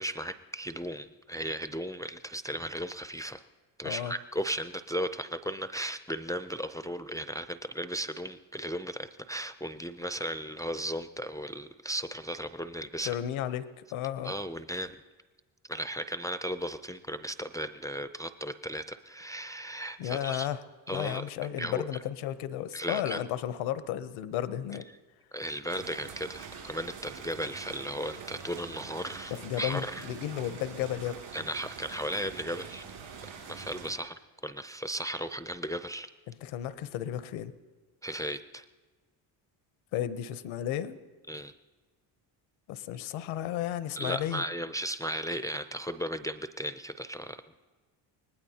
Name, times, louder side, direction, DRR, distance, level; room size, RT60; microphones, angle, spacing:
voice 1, 0.0-3.4 3.8-13.2 14.2-15.0 15.7-20.5 20.9-21.2 21.6-21.9 22.7-23.2 25.3-30.0 31.3-32.8 33.5-34.1 34.4-36.1 38.0-38.6 41.3-41.5 44.0-47.4, right 1 dB, 5° left, 10 dB, 0.4 m, -36 dB
voice 2, 13.0-14.3 20.0-20.6 20.9-24.8 29.3-31.2 36.3-37.5 39.9-41.0 42.7-44.4, left 11 dB, 80° left, 13 dB, 0.9 m, -33 dB
sound 1, 25.7-33.9, right 6 dB, 70° right, 5.5 m, -45 dB
24.5 x 19.0 x 2.8 m, 1.3 s
supercardioid pair, 80°, 48 cm